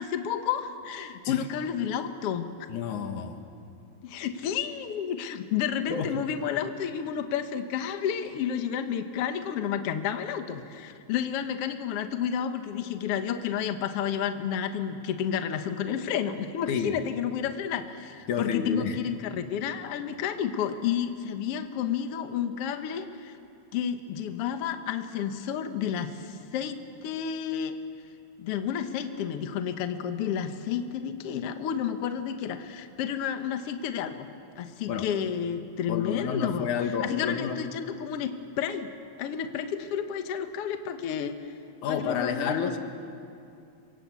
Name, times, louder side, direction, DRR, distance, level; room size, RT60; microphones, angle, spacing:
voice 1, 0.0-2.5 4.0-23.4 23.7-27.8 28.4-34.3 34.6-36.7 37.0-38.9 39.2-41.5 41.9-42.8, left 8 dB, 60° left, 7 dB, 2.0 m, -31 dB
voice 2, 2.7-3.4 5.9-6.2 16.7-17.0 18.3-19.0 34.9-35.1 35.9-37.6 41.8-42.8, left 7 dB, 85° left, 6 dB, 2.9 m, -30 dB
27.5 x 23.5 x 8.3 m, 2.5 s
omnidirectional pair, 3.3 m